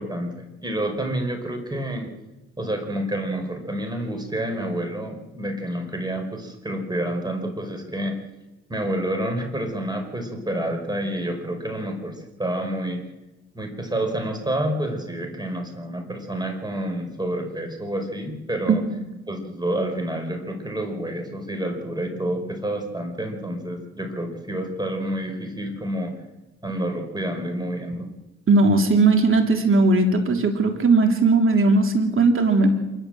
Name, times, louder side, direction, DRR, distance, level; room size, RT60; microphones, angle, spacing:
voice 1, 0.0-2.1 2.6-8.2 8.7-13.0 13.5-18.8 19.3-26.1 26.6-28.1, right 1 dB, 15° right, 4 dB, 4.6 m, -28 dB
voice 2, 28.5-32.8, right 3 dB, 45° right, 3 dB, 3.3 m, -18 dB
27.5 x 12.5 x 7.8 m, 1.1 s
cardioid pair, 90°, 30 cm